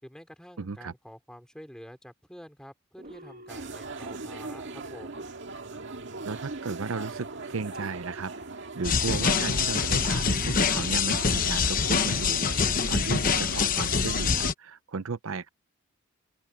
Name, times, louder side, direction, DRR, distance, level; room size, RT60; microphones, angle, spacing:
voice 1, 0.0-5.3, equal, 5° left, 4.5 m, -48 dB
voice 2, 0.6-0.9 6.2-8.3 8.8-15.5, right 4 dB, 80° right, 0.7 m, -35 dB
sound 1, 3.0-13.7, right 2 dB, 45° right, 1.4 m, -50 dB
sound 2, 3.5-14.5, right 3 dB, 60° right, 2.1 m, -39 dB
sound 3, 8.8-14.5, left 6 dB, 45° left, 1.0 m, -25 dB
open air
head